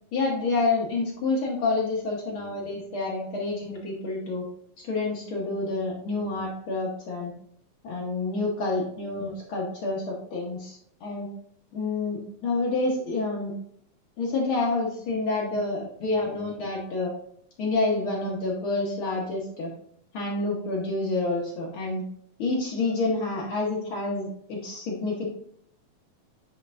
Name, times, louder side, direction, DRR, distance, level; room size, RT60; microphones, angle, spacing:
voice 1, 0.1-4.4 4.8-7.3 7.8-11.3 11.7-13.5 14.2-17.1 17.6-19.7 20.1-22.0 22.4-25.2, left 3 dB, 75° left, -2 dB, 1.2 m, -28 dB
9.0 x 4.5 x 2.5 m, 0.66 s
omnidirectional pair, 3.9 m